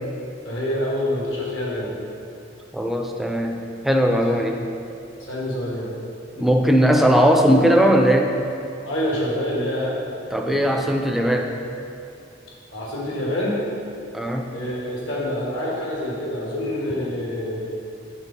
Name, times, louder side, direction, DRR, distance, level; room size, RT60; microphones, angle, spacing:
voice 1, 0.4-1.9 4.3-4.4 5.3-5.9 8.8-9.9 10.4-10.7 12.7-13.6 14.5-17.6, left 1 dB, 75° left, -5 dB, 1.5 m, -26 dB
voice 2, 2.7-3.6 3.8-4.7 6.4-8.3 10.3-11.5 14.1-14.5, equal, ahead, 2 dB, 0.3 m, -18 dB
4.5 x 4.1 x 5.3 m, 2.6 s
head